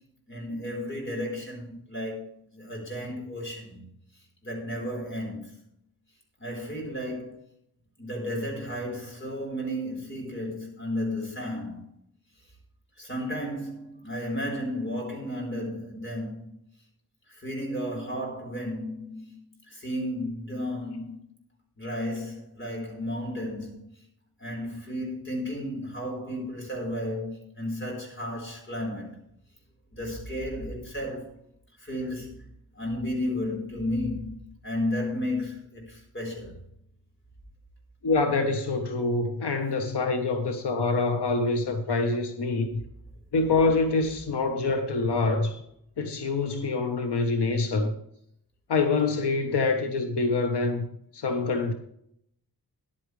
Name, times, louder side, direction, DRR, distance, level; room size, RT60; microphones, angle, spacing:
voice 1, 0.3-3.9 4.4-5.5 6.4-7.4 8.0-11.9 13.0-16.5 17.3-19.4 19.7-21.2 21.8-23.9 24.4-29.2 29.9-31.3 31.8-32.4 32.7-34.3 34.6-36.6, left 1 dB, 30° left, 4.3 m, -33 dB
voice 2, 38.0-42.8 43.3-45.6 46.0-47.9 48.7-50.9 51.1-51.7, left 3 dB, 90° left, 1.2 m, -25 dB
14.0 x 10.5 x 3.3 m
wide cardioid pair, 165°, 39 cm